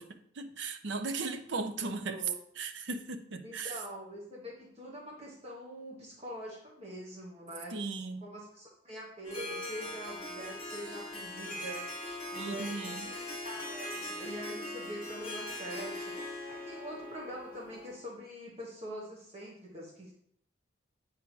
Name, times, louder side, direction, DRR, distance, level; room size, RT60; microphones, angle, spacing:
voice 1, 0.0-2.2 2.6-3.8 7.7-8.3 12.3-13.1, right 3 dB, 70° right, 7 dB, 0.7 m, -37 dB
voice 2, 1.8-2.3 3.4-7.7 8.2-11.9 12.3-20.1, equal, 35° right, -2 dB, 1.2 m, -44 dB
Harp, 9.2-18.0, left 1 dB, 30° left, 2.0 m, -41 dB
8.3 x 4.7 x 3.2 m, 0.66 s
head